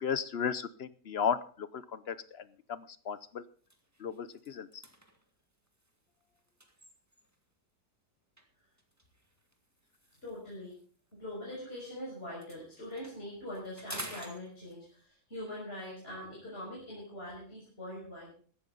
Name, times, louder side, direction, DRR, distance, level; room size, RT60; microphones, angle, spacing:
voice 1, 0.0-2.2 2.7-3.4 4.0-4.8, left 7 dB, 55° left, 15 dB, 0.7 m, -34 dB
sound 1, 2.4-2.6 3.1-3.2 3.6-7.5 8.4-11.9 12.2-15.1, right 1 dB, 10° right, 2.0 m, -50 dB
voice 2, 10.2-10.8 11.1-18.3, left 1 dB, 35° left, -5 dB, 6.1 m, -43 dB
16.0 x 13.0 x 4.0 m, 0.42 s
omnidirectional pair, 1.9 m